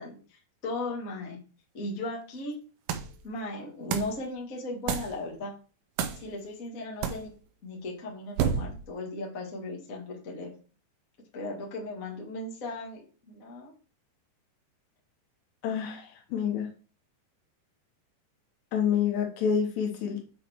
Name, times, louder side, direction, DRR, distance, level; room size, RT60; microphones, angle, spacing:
voice 1, 0.0-1.4 1.7-2.6 3.2-5.5 6.1-7.3 7.6-10.5 11.3-13.7, left 2 dB, 40° left, -2 dB, 1.2 m, -37 dB
sound 1, 2.9-3.2 3.9-4.2 4.9-5.2 6.0-6.3 7.0-7.3 8.4-8.9, right 8 dB, 75° right, 2.6 m, -29 dB
voice 2, 15.6-16.7 18.7-20.2, left 7 dB, 75° left, 1 dB, 3.4 m, -28 dB
8.1 x 4.1 x 4.7 m, 0.37 s
omnidirectional pair, 5.1 m